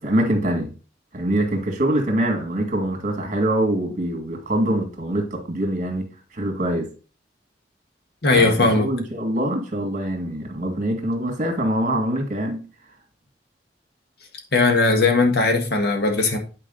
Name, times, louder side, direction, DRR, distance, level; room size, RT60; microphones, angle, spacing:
voice 1, 0.0-0.7 1.1-6.9 8.3-12.6, right 1 dB, 45° right, 3 dB, 2.1 m, -24 dB
voice 2, 8.2-8.9 14.5-16.4, left 3 dB, 65° left, 4 dB, 1.6 m, -18 dB
9.0 x 4.8 x 3.9 m, 0.35 s
head